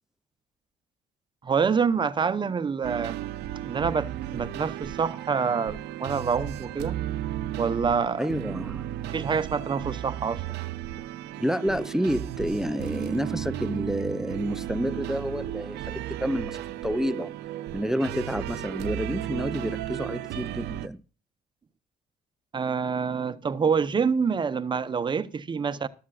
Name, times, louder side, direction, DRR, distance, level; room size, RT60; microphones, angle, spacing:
voice 1, 1.4-3.2 3.6-7.0 7.6-8.2 9.0-10.6 22.5-25.9, right 6 dB, 30° right, 0.8 m, -26 dB
sound 1, 2.8-20.9, right 12 dB, 85° right, 0.7 m, -34 dB
voice 2, 8.2-8.9 11.4-17.4 17.7-21.0, equal, 5° right, 0.4 m, -29 dB
13.5 x 12.5 x 2.4 m
cardioid pair, 110°, 17 cm